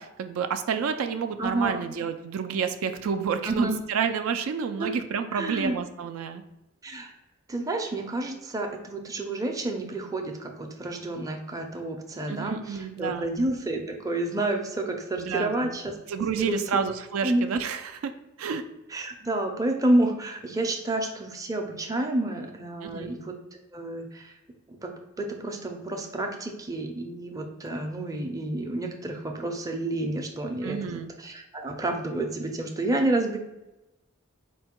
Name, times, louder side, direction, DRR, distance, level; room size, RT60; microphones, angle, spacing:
voice 1, 0.0-6.4 12.3-13.3 15.2-15.8 16.1-18.1 18.4-18.6 22.8-23.1 30.6-31.1, right 6 dB, 75° right, 8 dB, 0.3 m, -29 dB
voice 2, 1.4-1.8 3.4-3.8 4.8-4.9 5.3-5.8 6.8-7.1 7.5-16.0 16.2-16.6 17.2-17.5 18.9-23.3 23.7-24.3 24.7-24.9 25.2-33.4, right 2 dB, 15° right, 2 dB, 0.5 m, -29 dB
4.5 x 2.2 x 4.3 m, 0.97 s
head